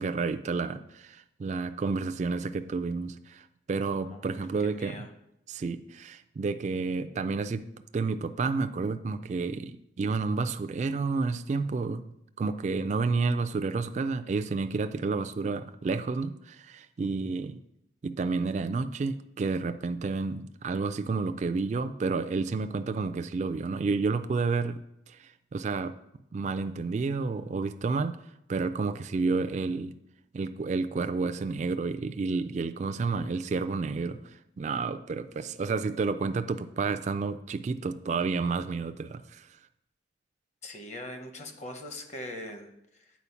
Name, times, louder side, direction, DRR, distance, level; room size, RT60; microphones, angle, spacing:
voice 1, 0.0-5.1 5.5-7.7 7.9-12.0 12.4-17.6 18.0-24.8 25.1-25.9 26.3-28.2 28.5-30.0 30.3-39.5, right 4 dB, 40° right, 10 dB, 0.3 m, -30 dB
voice 2, 4.0-5.1 40.6-43.1, left 1 dB, 40° left, 6 dB, 0.9 m, -42 dB
8.4 x 4.4 x 5.6 m, 0.80 s
head